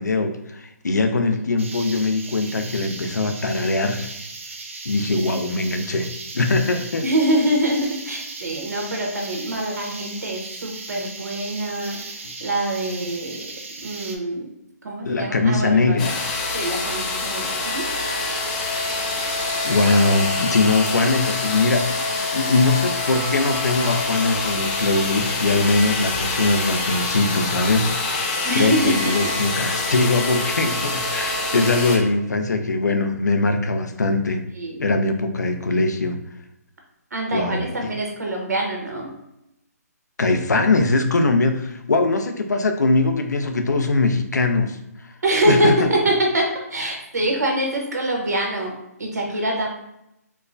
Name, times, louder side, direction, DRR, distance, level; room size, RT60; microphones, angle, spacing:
voice 1, 0.0-4.1 4.9-6.1 6.3-7.0 15.0-16.2 19.6-22.0 22.3-34.4 34.8-36.2 37.3-37.6 40.2-44.8 45.5-45.9, left 3 dB, 90° left, 6 dB, 0.5 m, -21 dB
sound 1, 1.6-14.2, right 3 dB, 50° right, 0.5 m, -37 dB
voice 2, 7.0-13.5 13.8-14.5 14.8-16.0 16.5-17.9 28.4-29.4 34.5-34.8 37.1-39.1 45.2-49.7, right 1 dB, 75° right, 0 dB, 1.1 m, -24 dB
sound 2, 16.0-32.0, left 3 dB, 25° left, 0.6 m, -25 dB
4.5 x 2.1 x 2.5 m, 0.85 s
hypercardioid pair, 160°, 9 cm